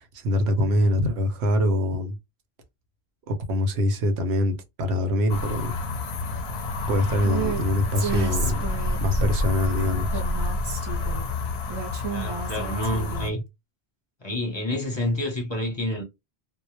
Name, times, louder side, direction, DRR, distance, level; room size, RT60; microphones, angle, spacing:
voice 1, 0.0-2.2 3.3-5.7 6.9-8.6 9.0-10.2, left 1 dB, 90° right, 0.9 m, -24 dB
sound 1, 5.3-13.3, left 2 dB, 90° left, 0.9 m, -28 dB
Female speech woman speaking, 7.2-7.6 7.9-9.2 10.1-11.2 11.7-13.3, right 6 dB, 35° right, 0.5 m, -32 dB
voice 2, 12.1-13.4 14.2-16.0, left 1 dB, 30° left, 0.6 m, -28 dB
2.1 x 2.0 x 2.9 m
omnidirectional pair, 1.1 m